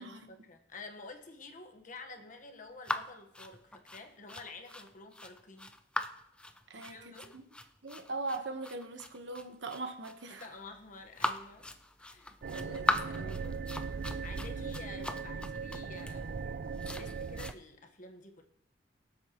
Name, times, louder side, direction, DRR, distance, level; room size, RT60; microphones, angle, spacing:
voice 1, 0.0-5.8 6.8-7.3 10.3-13.8 14.2-16.5 16.9-18.4, left 3 dB, 45° left, 5 dB, 1.4 m, -50 dB
sound 1, 2.8-17.5, left 1 dB, 5° left, 0.5 m, -39 dB
voice 2, 6.7-7.4 7.8-10.4 12.7-12.9 13.2-13.3, right 3 dB, 90° right, 6 dB, 1.3 m, -40 dB
sound 2, 12.4-17.5, right 5 dB, 60° right, 0.4 m, -39 dB
24.0 x 8.2 x 3.1 m, 0.76 s
head